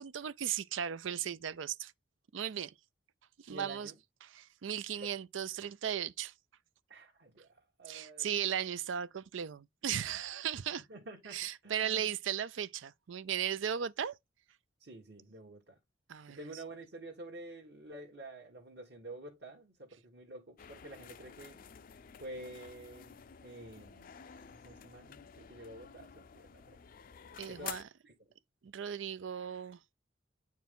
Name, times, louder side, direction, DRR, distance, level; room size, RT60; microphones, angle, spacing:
voice 1, 0.0-1.9 2.3-2.7 3.4-3.9 4.2-6.3 7.9-10.9 11.3-14.2 16.1-16.4 27.4-27.8 28.6-29.8, right 9 dB, 85° right, 0.5 m, -36 dB
voice 2, 3.5-3.9 5.0-5.1 6.9-8.3 10.9-12.1 14.8-15.8 16.3-21.6 22.2-23.2 23.4-26.8 27.5-27.8 28.0-28.2, right 1 dB, 60° right, 1.5 m, -49 dB
sound 1, 20.6-27.8, left 8 dB, 50° left, 0.4 m, -51 dB
9.1 x 4.6 x 3.6 m
head